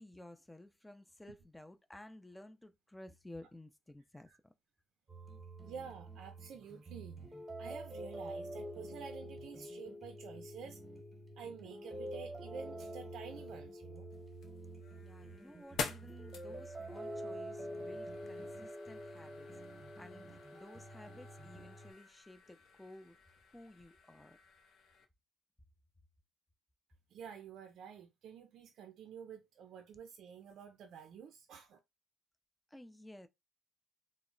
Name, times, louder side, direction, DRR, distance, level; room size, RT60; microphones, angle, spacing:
voice 1, 0.0-4.5 15.0-19.5 20.0-23.2 23.5-24.4 32.7-33.3, left 1 dB, 10° left, 0.4 m, -54 dB
sound 1, 5.1-21.9, right 1 dB, 20° right, 0.9 m, -47 dB
voice 2, 5.6-7.2 7.6-10.8 11.4-14.1 27.1-31.8, right 6 dB, 75° right, 0.4 m, -50 dB
sound 2, 14.1-25.1, left 5 dB, 70° left, 0.5 m, -49 dB
2.0 x 2.0 x 3.7 m
cardioid pair, 90°, 0 cm